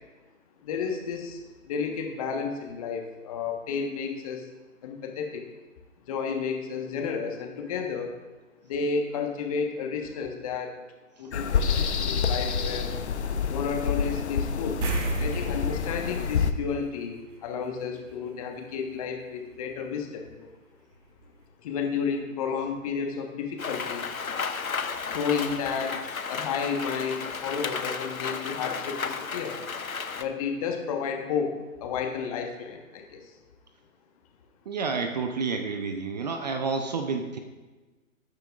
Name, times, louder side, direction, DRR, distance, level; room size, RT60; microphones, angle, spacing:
voice 1, 0.6-4.5 4.8-5.5 6.1-8.2 8.6-10.8 11.2-12.9 13.5-14.8 15.2-20.5 21.6-24.1 25.1-26.0 26.3-29.6 30.2-33.3, left 6 dB, 25° left, 3 dB, 1.3 m, -32 dB
sound 1, 11.3-16.5, left 6 dB, 55° left, 0.8 m, -28 dB
sound 2, 14.8-17.6 17.9-18.1 21.0-21.1 21.4-21.5, right 3 dB, 60° right, 1.6 m, -33 dB
Rain, 23.6-30.2, left 5 dB, 80° left, 1.0 m, -33 dB
voice 2, 34.7-37.4, right 4 dB, 30° right, 6 dB, 0.7 m, -29 dB
19.0 x 9.3 x 2.5 m, 1.2 s
figure-of-eight pair, 140°, 41 cm